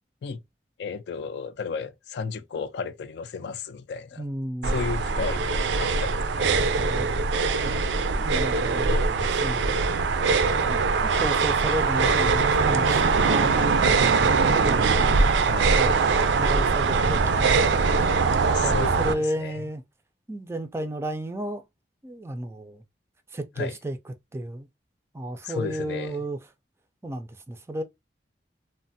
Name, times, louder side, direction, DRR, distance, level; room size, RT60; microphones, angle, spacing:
voice 1, 0.8-4.2 4.7-6.6 8.9-9.0 15.5-15.8 18.5-19.6 23.6-23.8 25.4-26.2, left 5 dB, 70° left, 0.3 m, -34 dB
voice 2, 4.2-4.8 6.8-7.2 7.6-9.8 10.7-14.9 15.7-17.8 18.3-19.8 20.3-21.6 22.0-22.8 23.3-24.7 25.1-26.4 27.0-27.8, right 1 dB, 15° right, 0.3 m, -33 dB
sound 1, 4.6-19.1, right 4 dB, 85° right, 0.4 m, -22 dB
3.1 x 2.1 x 2.6 m
head